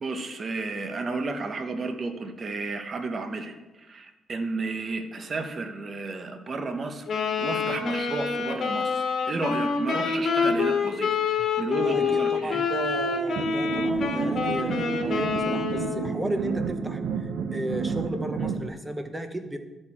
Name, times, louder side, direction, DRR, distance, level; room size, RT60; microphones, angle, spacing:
voice 1, 0.0-12.6, right 3 dB, 40° right, 6 dB, 0.9 m, -32 dB
Wind instrument woodwind instrument, 7.1-16.1, left 5 dB, 55° left, 1.4 m, -27 dB
voice 2, 11.8-19.6, right 1 dB, 15° right, 6 dB, 1.0 m, -34 dB
sound 1, 13.4-18.7, right 5 dB, 75° right, 0.6 m, -30 dB
13.0 x 4.5 x 4.4 m, 1.1 s
cardioid pair, 90°, 0 cm